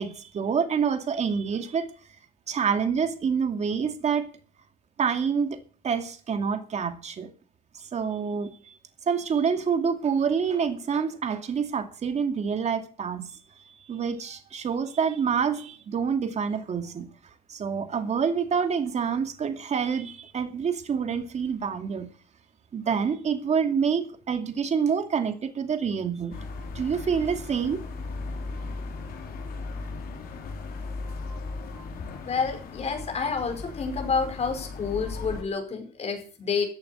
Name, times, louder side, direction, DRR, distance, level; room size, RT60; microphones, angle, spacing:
voice 1, 0.0-1.9 2.5-4.3 5.0-7.3 7.7-8.8 9.1-13.4 13.9-17.1 17.5-22.1 22.7-26.4 26.7-27.9, right 6 dB, 40° right, 2.5 m, -27 dB
sound 1, 26.3-35.4, left 3 dB, 60° left, 3.9 m, -37 dB
voice 2, 32.3-36.6, left 5 dB, 40° left, 5.2 m, -29 dB
14.5 x 8.7 x 8.2 m
cardioid pair, 110°, 17 cm